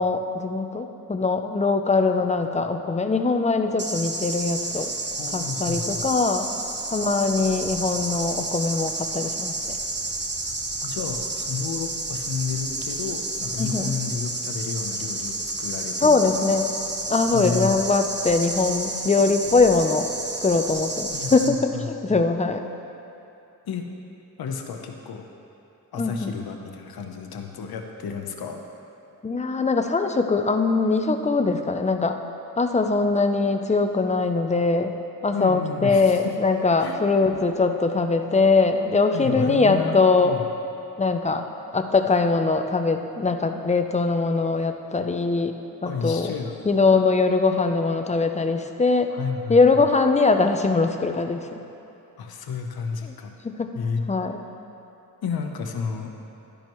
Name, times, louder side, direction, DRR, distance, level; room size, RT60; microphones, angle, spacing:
voice 1, 0.0-4.9 5.3-6.5 6.9-9.7 13.6-13.9 16.0-16.7 17.1-20.1 20.4-22.6 26.0-26.4 29.2-32.1 32.6-35.0 35.2-40.3 41.0-41.4 41.7-45.5 45.8-46.3 46.6-49.1 49.5-51.5 53.4-53.7 54.1-54.4, left 3 dB, 20° left, 6 dB, 0.6 m, -22 dB
sound 1, 3.8-21.5, right 2 dB, 30° right, 1.1 m, -30 dB
voice 2, 5.1-6.1 10.8-16.6 17.3-17.7 21.1-22.2 23.7-23.9 24.4-25.2 25.9-28.6 35.3-36.4 36.8-37.0 39.1-40.0 40.2-40.4 45.8-46.5 49.1-49.6 52.2-53.3 53.7-54.0 55.2-56.1, left 5 dB, 75° left, 3 dB, 0.9 m, -31 dB
12.0 x 10.0 x 3.1 m, 2.8 s
cardioid pair, 85°, 37 cm